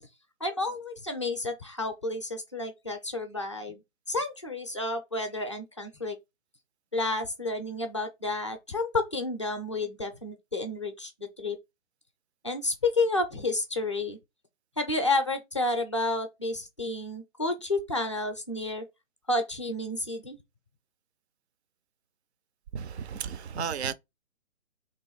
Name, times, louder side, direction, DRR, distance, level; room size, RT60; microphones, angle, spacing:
voice 1, 0.4-3.8 4.1-6.2 6.9-11.6 12.4-14.2 14.8-18.8 19.3-20.4, left 2 dB, 25° left, 0.4 m, -30 dB
voice 2, 22.7-23.9, right 7 dB, 55° right, 0.5 m, -33 dB
3.3 x 3.0 x 4.5 m
hypercardioid pair, 150°, 39 cm